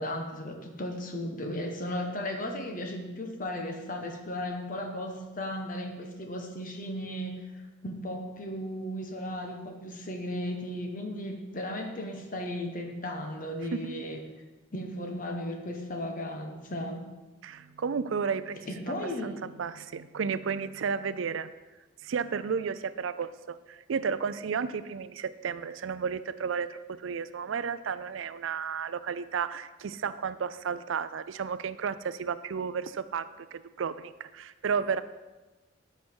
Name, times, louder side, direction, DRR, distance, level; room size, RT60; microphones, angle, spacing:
voice 1, 0.0-7.4 7.8-14.2 14.7-17.0 18.7-19.4, left 1 dB, 40° left, 3 dB, 1.2 m, -35 dB
voice 2, 17.4-18.6 19.2-21.5 22.0-35.0, right 6 dB, 80° right, 14 dB, 0.4 m, -33 dB
12.0 x 5.8 x 4.6 m, 1.2 s
head